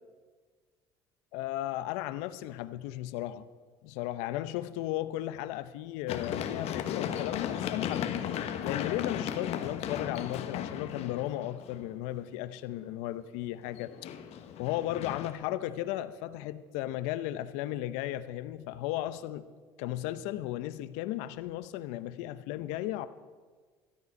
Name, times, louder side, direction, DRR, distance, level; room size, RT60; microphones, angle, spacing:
voice 1, 1.3-3.5 3.8-8.2 8.6-14.1 14.6-19.5 19.8-23.1, left 14 dB, 80° left, 14 dB, 0.7 m, -35 dB
Run, 6.1-11.9 13.8-15.3, left 9 dB, 65° left, 1.1 m, -35 dB
13.5 x 13.0 x 5.3 m, 1.5 s
supercardioid pair, 80°, 12 cm